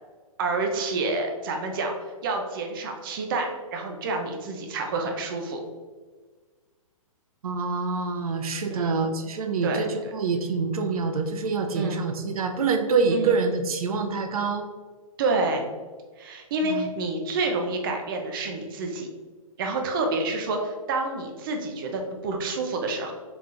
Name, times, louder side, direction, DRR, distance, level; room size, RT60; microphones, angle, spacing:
voice 1, 0.4-1.9 2.2-5.6 8.7-9.0 9.6-10.1 11.7-12.0 13.1-13.4 15.2-15.7 16.2-19.1 19.6-23.1, right 3 dB, 40° right, 3 dB, 0.6 m, -28 dB
voice 2, 7.4-14.7 16.6-16.9, right 4 dB, 85° right, 5 dB, 0.6 m, -26 dB
3.9 x 2.9 x 3.7 m, 1.4 s
hypercardioid pair, 160°, 18 cm